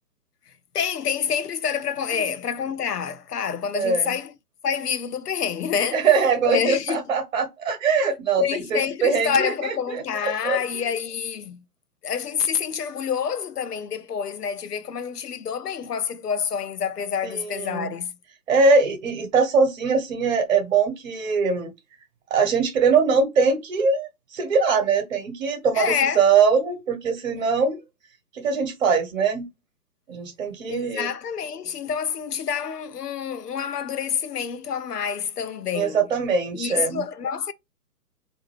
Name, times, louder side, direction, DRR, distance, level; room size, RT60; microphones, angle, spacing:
voice 1, 0.7-4.3 4.6-6.1 6.4-7.0 8.4-11.6 12.0-18.1 25.7-26.2 30.7-36.1 36.5-37.5, left 7 dB, 75° left, 0.6 m, -27 dB
voice 2, 3.7-4.1 5.9-9.5 9.9-10.0 10.4-10.6 17.2-17.9 18.5-21.7 22.3-27.8 28.3-29.5 30.1-31.1 35.7-37.0, right 5 dB, 45° right, 1.0 m, -22 dB
3.4 x 2.6 x 3.1 m
figure-of-eight pair, 125°, 48 cm